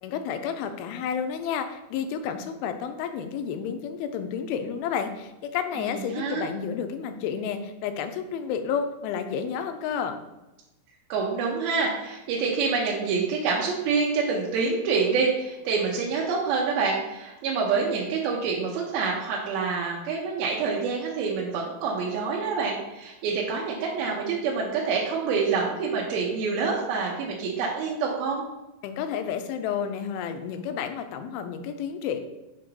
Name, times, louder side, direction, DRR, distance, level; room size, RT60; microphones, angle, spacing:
voice 1, 0.0-10.2 28.8-32.2, left 7 dB, 90° left, 7 dB, 2.5 m, -31 dB
voice 2, 5.8-6.5 11.1-28.4, right 5 dB, 90° right, -3 dB, 2.7 m, -27 dB
6.9 x 2.9 x 5.2 m, 1.0 s
omnidirectional pair, 4.3 m